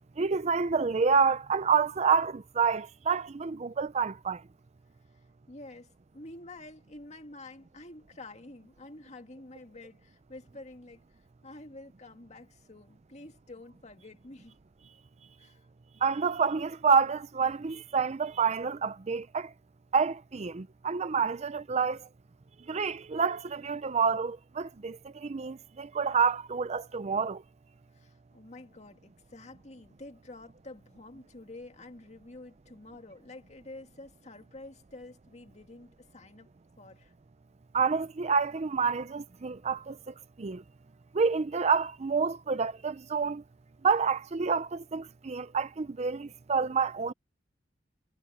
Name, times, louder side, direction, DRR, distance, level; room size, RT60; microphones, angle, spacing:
voice 1, 0.2-4.4 16.0-19.5 19.9-22.1 22.7-27.4 37.7-40.6 41.1-43.4 43.8-47.1, right 5 dB, 35° right, 0.5 m, -28 dB
voice 2, 5.5-11.0 11.4-14.6 15.4-15.6 27.9-36.5 36.8-37.1, left 2 dB, 40° left, 2.0 m, -48 dB
head